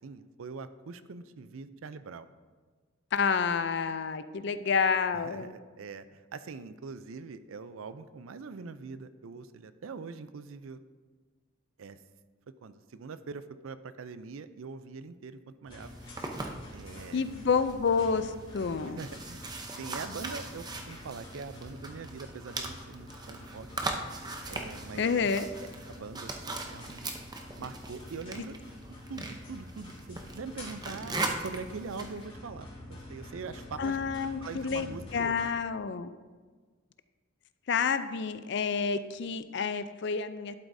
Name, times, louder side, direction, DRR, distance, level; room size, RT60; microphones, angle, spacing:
voice 1, 0.0-2.3 5.1-10.8 11.8-12.0 12.6-15.9 16.7-17.2 18.8-23.7 24.5-25.3 25.9-27.0 27.6-28.6 29.1-34.0 34.4-35.3, right 4 dB, 80° right, 12 dB, 0.5 m, -43 dB
voice 2, 3.1-5.5 17.1-19.0 24.9-25.4 33.8-36.1 37.7-40.5, left 5 dB, 55° left, 12 dB, 0.4 m, -29 dB
sound 1, 15.7-35.5, left 1 dB, 25° left, 2.9 m, -47 dB
sound 2, 15.8-32.2, right 2 dB, 20° right, 0.6 m, -40 dB
11.5 x 8.1 x 2.6 m, 1.4 s
head